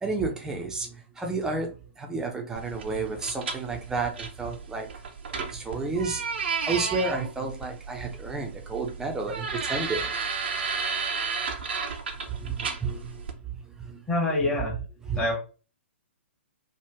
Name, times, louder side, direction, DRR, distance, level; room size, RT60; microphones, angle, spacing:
voice 1, 0.0-4.9 5.4-6.3 6.7-10.1 12.3-14.0 14.4-14.5 15.1-15.3, right 3 dB, 10° right, 0.6 m, -31 dB
sound 1, 2.6-13.3, right 5 dB, 55° right, 0.7 m, -33 dB
voice 2, 14.1-14.8 15.1-15.4, left 2 dB, 10° left, 1.1 m, -25 dB
3.0 x 2.4 x 3.5 m
figure-of-eight pair, 115°, 7 cm